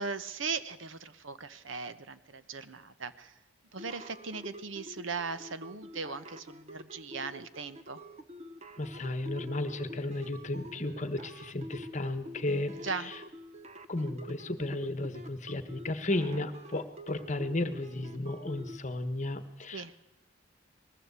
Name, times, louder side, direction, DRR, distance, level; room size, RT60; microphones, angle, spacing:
voice 1, 0.0-3.3 3.7-8.0 12.8-13.1 19.7-19.9, right 4 dB, 70° right, 12 dB, 1.1 m, -38 dB
sound 1, 3.8-18.8, equal, 35° right, 1.0 m, -47 dB
voice 2, 8.8-13.2 13.9-20.0, left 2 dB, 35° left, 11 dB, 1.3 m, -34 dB
20.5 x 15.5 x 8.3 m, 0.94 s
head